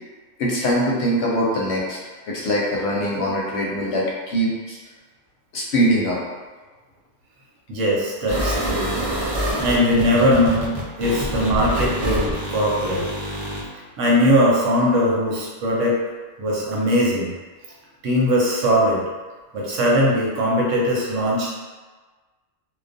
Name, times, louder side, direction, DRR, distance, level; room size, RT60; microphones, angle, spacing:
voice 1, 0.4-2.0 2.3-4.8 5.5-6.2, equal, 65° left, -4 dB, 0.8 m, -22 dB
voice 2, 7.7-9.0 9.6-10.7 11.0-13.1 14.0-16.0 16.4-17.3 18.0-19.0 19.5-21.5, equal, 80° right, -4 dB, 1.0 m, -20 dB
sound 1, 8.3-13.6, equal, 50° right, 0.4 m, -26 dB
2.3 x 2.2 x 2.5 m, 1.3 s
omnidirectional pair, 1.3 m